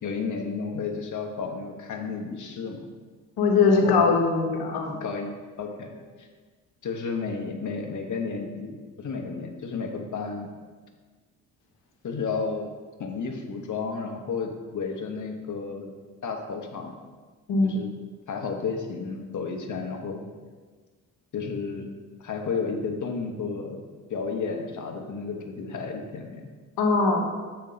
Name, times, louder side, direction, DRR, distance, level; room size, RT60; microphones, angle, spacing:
voice 1, 0.0-2.9 3.7-4.1 5.0-5.9 6.2-6.3 6.8-10.5 12.0-12.7 13.0-15.9 16.2-16.9 17.6-17.9 18.3-20.2 21.3-21.9 22.2-23.8 24.1-26.5, left 5 dB, 50° left, 3 dB, 1.0 m, -32 dB
voice 2, 3.4-5.0 17.5-17.8 26.8-27.2, left 4 dB, 70° left, 1 dB, 1.2 m, -21 dB
6.4 x 4.3 x 4.0 m, 1.4 s
supercardioid pair, 65°, 40 cm